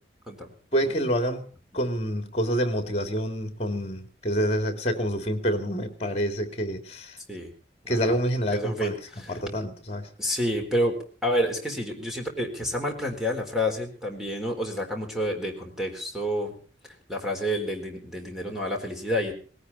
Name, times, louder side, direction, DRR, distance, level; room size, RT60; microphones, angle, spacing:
voice 1, 0.7-1.4 1.7-7.2 7.9-8.9 9.3-10.1, equal, 35° left, 7 dB, 2.9 m, -27 dB
voice 2, 8.5-9.3 10.2-11.0 11.2-16.5 17.1-19.3, equal, ahead, 1 dB, 4.1 m, -29 dB
19.5 x 17.5 x 4.2 m, 0.39 s
head